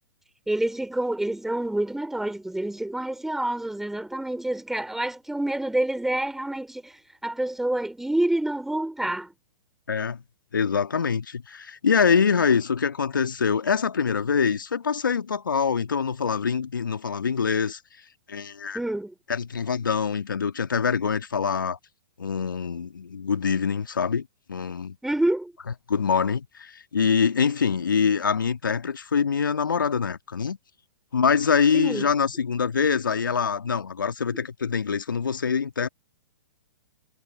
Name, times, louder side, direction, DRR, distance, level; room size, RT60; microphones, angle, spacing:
voice 1, 0.5-7.0 7.2-9.3 18.7-19.1 25.0-25.5 31.7-32.0, right 1 dB, 5° right, 4.6 m, -27 dB
voice 2, 9.9-10.2 10.5-17.8 18.3-18.8 19.3-21.8 22.2-25.0 25.9-30.6 31.1-35.9, left 6 dB, 75° left, 1.7 m, -24 dB
figure-of-eight pair, 115°, 11 cm